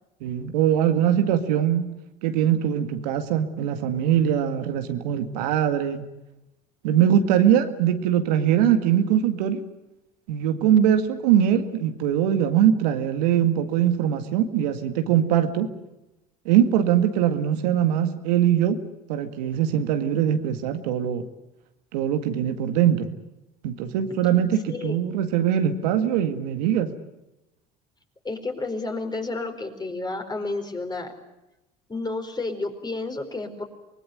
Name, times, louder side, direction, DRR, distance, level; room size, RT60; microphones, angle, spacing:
voice 1, 0.2-1.9 2.2-6.1 6.8-9.6 10.3-15.7 16.5-18.8 19.1-21.2 21.9-23.1 23.6-26.9, right 10 dB, 85° right, 7 dB, 2.0 m, -22 dB
voice 2, 24.7-25.0 28.2-31.1 31.9-33.6, left 3 dB, 20° left, 5 dB, 4.7 m, -31 dB
24.5 x 20.0 x 9.3 m, 0.95 s
hypercardioid pair, 75°, 20 cm